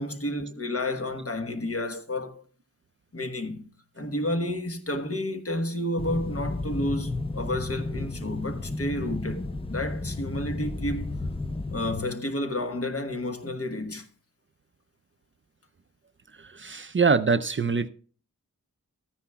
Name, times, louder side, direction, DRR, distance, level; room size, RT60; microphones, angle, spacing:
voice 1, 0.0-2.4 3.1-3.7 4.0-11.1 11.7-14.1, left 1 dB, 50° left, 1.2 m, -31 dB
sound 1, 6.0-12.0, left 2 dB, 20° left, 0.5 m, -32 dB
voice 2, 16.4-17.9, right 5 dB, 40° right, 0.5 m, -24 dB
14.0 x 9.7 x 2.3 m
wide cardioid pair, 65°, 30 cm